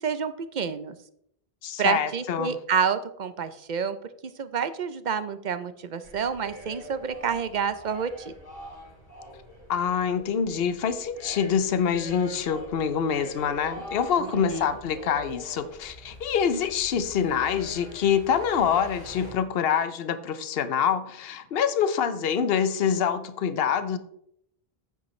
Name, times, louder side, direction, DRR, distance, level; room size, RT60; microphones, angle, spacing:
voice 1, 0.0-0.9 1.8-4.0 4.4-8.3 14.2-14.6, right 6 dB, 50° right, 12 dB, 0.7 m, -28 dB
voice 2, 1.6-2.6 9.7-24.0, left 7 dB, 70° left, 12 dB, 0.9 m, -26 dB
sound 1, 6.0-19.3, equal, 35° left, 3.4 m, -44 dB
9.3 x 8.7 x 3.2 m, 0.73 s
omnidirectional pair, 1.0 m